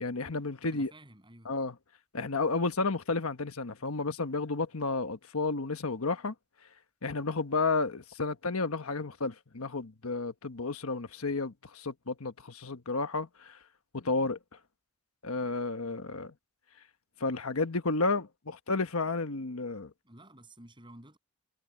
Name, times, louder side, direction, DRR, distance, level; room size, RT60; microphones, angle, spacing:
voice 1, 0.0-0.9 1.5-1.7 2.1-6.3 7.0-13.6 13.9-14.4 15.2-16.3 17.2-19.9, left 3 dB, 85° left, 1.3 m, -32 dB
voice 2, 0.7-1.5 20.0-21.2, right 1 dB, 20° right, 7.6 m, -52 dB
head